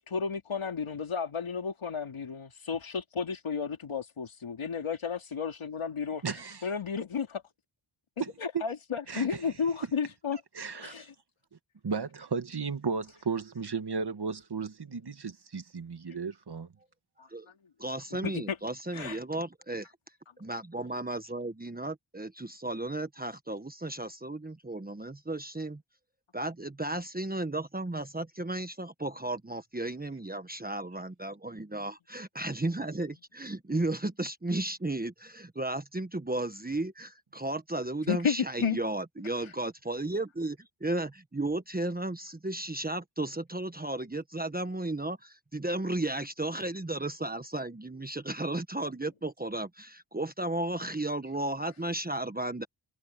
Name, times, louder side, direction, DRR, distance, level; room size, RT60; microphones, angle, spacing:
voice 1, 0.0-7.4 8.4-10.4 10.7-11.1 17.2-17.3 18.1-18.6 18.9-19.2 38.1-38.8 39.4-39.5, left 6 dB, 85° left, 3.0 m, -33 dB
voice 2, 6.2-6.7 8.2-8.7 9.1-9.5 10.3-11.1 11.8-16.7, right 5 dB, 55° right, 1.8 m, -35 dB
voice 3, 17.8-19.9 20.4-25.8 26.3-52.6, right 2 dB, 20° right, 1.3 m, -34 dB
wide cardioid pair, 65°, 48 cm